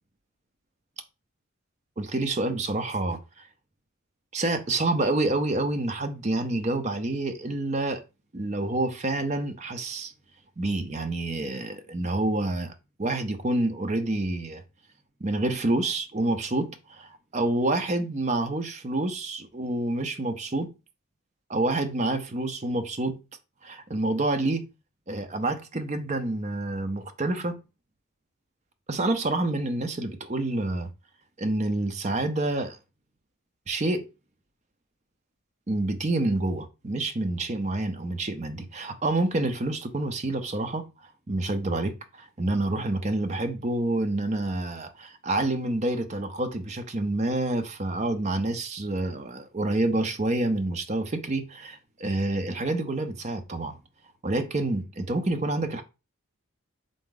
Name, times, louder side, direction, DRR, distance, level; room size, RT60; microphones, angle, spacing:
voice 1, 2.0-3.2 4.3-8.0 8.3-10.1 10.6-12.7 13.0-14.6 15.2-20.7 21.5-23.2 23.6-24.7 25.1-27.6 28.9-30.9 31.4-32.8 33.7-34.1 35.7-40.9 41.3-53.8 54.2-55.8, right 2 dB, 30° right, 0.6 m, -28 dB
3.8 x 3.5 x 3.8 m
head